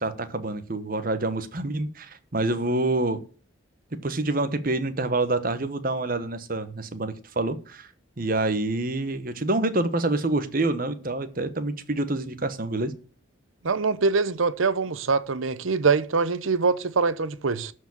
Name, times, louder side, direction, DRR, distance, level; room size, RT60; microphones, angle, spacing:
voice 1, 0.0-3.2 4.0-7.9 8.2-12.9, right 2 dB, 40° right, 1.1 m, -27 dB
voice 2, 13.6-17.7, right 4 dB, 75° right, 0.8 m, -24 dB
12.5 x 4.8 x 7.1 m
head